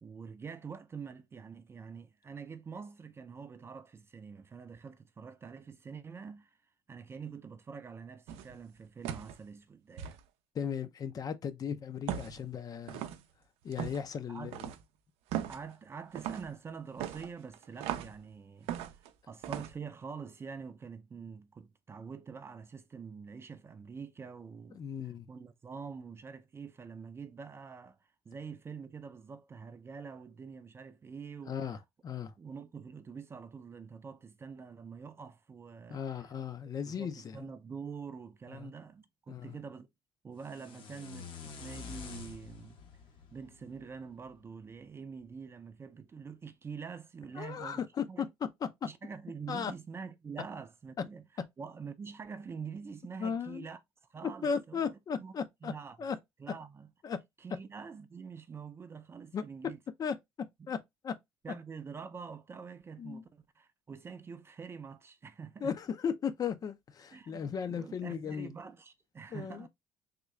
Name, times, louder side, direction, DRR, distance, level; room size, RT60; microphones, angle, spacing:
voice 1, 0.0-6.6 6.9-10.2 14.3-14.5 15.5-24.9 25.3-31.6 32.4-36.3 36.9-39.9 40.2-42.8 43.3-47.8 48.1-48.2 48.8-51.2 51.6-53.8 54.1-55.3 55.6-56.0 56.4-56.9 57.4-59.8 61.4-65.7 67.1-69.7, right 5 dB, 25° right, 0.4 m, -46 dB
Walking up and downstairs.Wooden stair(dns Vlshpng Eq), 8.3-8.6 9.0-9.4 10.0-10.2 12.1-12.4 12.9-13.2 13.7-14.0 14.5-14.8 15.3-15.6 16.1-16.5 17.0-18.2 18.7-19.1 19.4-19.7, right 10 dB, 85° right, 0.5 m, -38 dB
voice 2, 10.5-13.1 13.6-14.7 24.7-25.3 31.5-32.3 35.9-37.5 38.6-38.7 39.3-39.5 47.4-48.3 49.5-49.7 53.2-53.7 54.2-55.7 56.0-56.2 57.0-57.2 59.3-59.4 60.0-60.2 60.7-60.8 61.0-61.1 63.0-63.2 65.6-68.5 69.3-69.7, left 7 dB, 40° left, 0.5 m, -36 dB
sound 1, 40.4-44.5, left 6 dB, 55° left, 0.9 m, -48 dB
3.7 x 2.3 x 3.1 m
cardioid pair, 120°, 10 cm